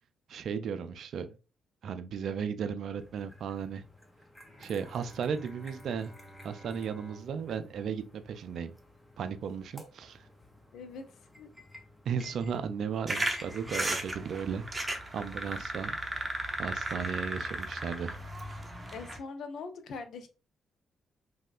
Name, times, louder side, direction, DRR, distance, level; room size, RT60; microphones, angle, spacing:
voice 1, 0.3-1.4 1.8-3.8 4.6-6.1 6.4-8.7 9.2-10.3 12.1-14.7 15.1-16.0 16.6-18.2, right 7 dB, 65° right, 0.3 m, -35 dB
sound 1, 3.0-15.5, left 1 dB, 10° left, 0.8 m, -53 dB
Bowed string instrument, 4.4-9.7, right 1 dB, 35° left, 1.3 m, -54 dB
voice 2, 10.7-11.0 11.4-11.5 18.9-20.3, left 4 dB, 65° left, 0.4 m, -41 dB
sound 2, 13.1-19.2, right 1 dB, 25° right, 0.7 m, -35 dB
3.0 x 2.7 x 2.3 m
hypercardioid pair, 45°, 0 cm